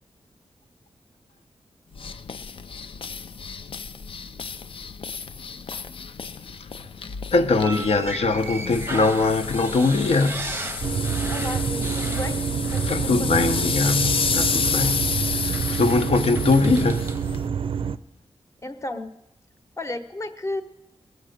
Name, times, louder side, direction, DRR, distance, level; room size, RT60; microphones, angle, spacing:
sound 1, 1.9-17.5, left 5 dB, 60° left, 0.5 m, -31 dB
voice 1, 7.3-10.5 12.9-17.1, left 3 dB, 80° left, 1.0 m, -22 dB
sound 2, 7.6-13.1 13.3-13.6 14.8-14.9 15.5-17.3, right 3 dB, 20° right, 0.7 m, -37 dB
sound 3, 10.8-18.0, right 7 dB, 60° right, 0.4 m, -27 dB
voice 2, 11.3-13.5 18.6-19.1 19.8-20.6, left 1 dB, 30° left, 0.9 m, -34 dB
20.0 x 8.1 x 6.6 m
wide cardioid pair, 150°, 10 cm